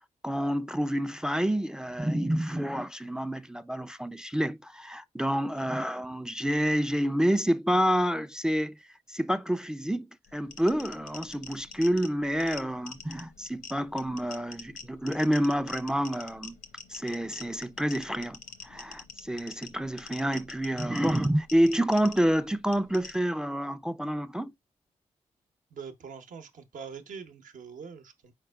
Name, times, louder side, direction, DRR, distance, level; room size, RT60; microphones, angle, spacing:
voice 1, 0.2-8.8 9.1-16.6 16.9-24.5, equal, 5° right, 0.3 m, -28 dB
sound 1, 10.2-23.1, left 5 dB, 85° left, 0.7 m, -46 dB
voice 2, 25.7-28.3, right 6 dB, 70° right, 0.8 m, -44 dB
4.7 x 4.3 x 2.2 m
supercardioid pair, 45°, 14 cm